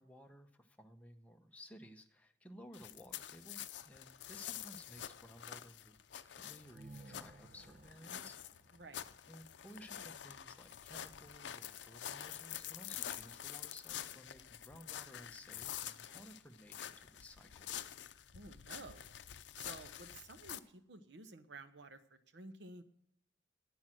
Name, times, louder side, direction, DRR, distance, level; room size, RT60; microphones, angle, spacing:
voice 1, 0.0-8.4 8.6-8.8 9.3-17.7, equal, 10° left, 4 dB, 0.8 m, -57 dB
sound 1, 2.7-20.6, left 11 dB, 75° left, 0.5 m, -48 dB
sound 2, 6.5-10.2, right 2 dB, 40° right, 0.4 m, -59 dB
voice 2, 8.7-9.0 18.3-19.1 19.5-22.8, right 3 dB, 70° right, 10 dB, 0.8 m, -53 dB
10.5 x 8.9 x 7.6 m, 0.73 s
head